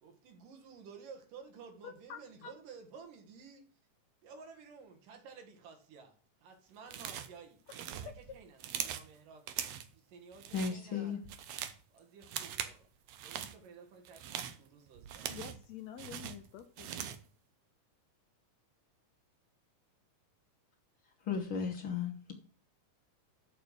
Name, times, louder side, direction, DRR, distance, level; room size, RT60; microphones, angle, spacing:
voice 1, 0.0-3.7 4.2-7.6 8.0-9.5 9.9-11.2 11.9-12.9 13.2-15.4, right 5 dB, 85° right, 3.3 m, -53 dB
voice 2, 1.8-2.5 7.7-7.8 8.0-8.4 15.3-16.9, left 9 dB, 75° left, 1.8 m, -48 dB
sound 1, 6.9-7.4 7.7-9.1 9.5-9.9 10.3-10.8 11.1-11.8 12.2-12.8 13.1-13.5 14.0-15.7 16.0-17.3, right 10 dB, 70° right, 1.7 m, -41 dB
voice 3, 10.5-11.2 21.2-22.3, left 6 dB, 55° left, 1.5 m, -35 dB
7.0 x 6.8 x 6.4 m
omnidirectional pair, 3.7 m